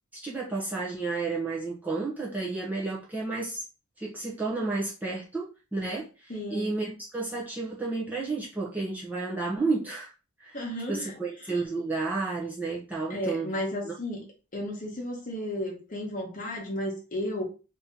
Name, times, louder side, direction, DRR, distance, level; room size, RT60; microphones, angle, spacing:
voice 1, 0.2-3.6 4.0-10.1 10.4-13.5 13.8-13.9, right 3 dB, 5° right, 0.8 m, -32 dB
voice 2, 6.3-6.7 10.5-11.1 11.5-11.6 13.1-14.2 14.5-17.4, left 1 dB, 35° left, 1.2 m, -33 dB
3.0 x 2.8 x 3.8 m
head